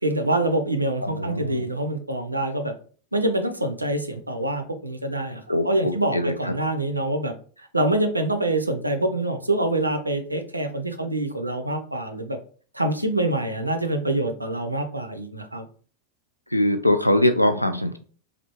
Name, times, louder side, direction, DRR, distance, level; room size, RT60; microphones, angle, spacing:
voice 1, 0.0-2.7 3.1-12.4 12.7-15.7, right 1 dB, 85° right, 7 dB, 0.5 m, -25 dB
voice 2, 1.0-1.6 5.5-6.5 16.5-18.0, left 1 dB, 90° left, 9 dB, 0.4 m, -22 dB
3.3 x 2.4 x 2.9 m, 0.42 s
figure-of-eight pair, 90°, 0 cm